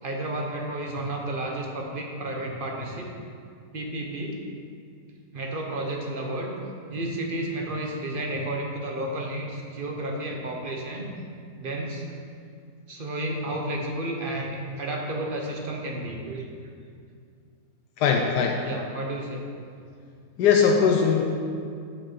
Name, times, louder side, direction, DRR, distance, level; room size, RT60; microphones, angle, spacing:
voice 1, 0.0-3.1 3.7-4.4 5.3-6.6 6.9-11.1 11.6-12.0 12.9-16.5 18.7-19.4, right 1 dB, 35° right, 0 dB, 1.0 m, -31 dB
voice 2, 18.0-18.6 20.4-21.2, left 6 dB, 75° left, 1 dB, 1.2 m, -20 dB
6.4 x 6.4 x 5.9 m, 2.3 s
omnidirectional pair, 1.8 m